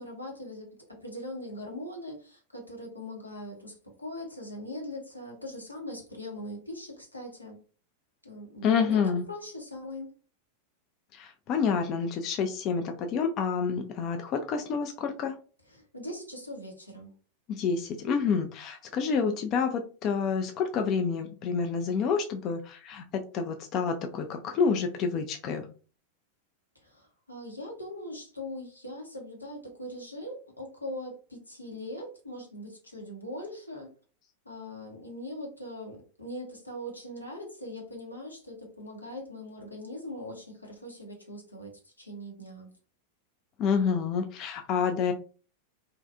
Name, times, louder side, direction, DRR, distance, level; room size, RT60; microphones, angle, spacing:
voice 1, 0.0-7.6 8.2-9.0 9.3-10.1 15.7-17.1 26.7-33.9 34.4-42.7, left 1 dB, 85° left, 0 dB, 0.8 m, -41 dB
voice 2, 8.6-9.2 11.1-15.4 17.5-25.7 43.6-45.1, left 6 dB, 35° left, 5 dB, 0.3 m, -28 dB
2.6 x 2.3 x 2.3 m, 0.39 s
figure-of-eight pair, 90°, 0 cm